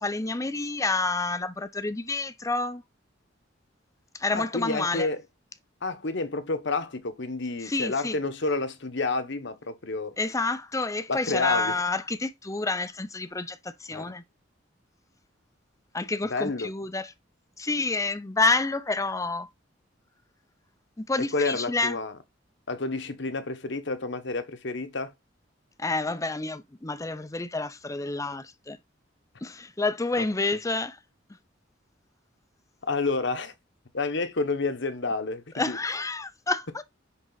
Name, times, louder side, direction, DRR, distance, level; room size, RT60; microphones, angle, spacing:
voice 1, 0.0-2.8 4.1-5.1 7.6-8.2 10.2-14.2 15.9-17.1 17.6-19.5 21.0-22.0 25.8-28.8 29.4-31.0 35.5-36.8, left 3 dB, 15° left, 0.5 m, -29 dB
voice 2, 4.3-5.2 5.8-10.2 11.1-11.8 13.9-14.1 16.3-16.7 21.2-22.1 22.7-25.1 32.9-33.5 33.9-35.8, left 3 dB, 65° left, 1.1 m, -29 dB
10.0 x 3.8 x 4.0 m
head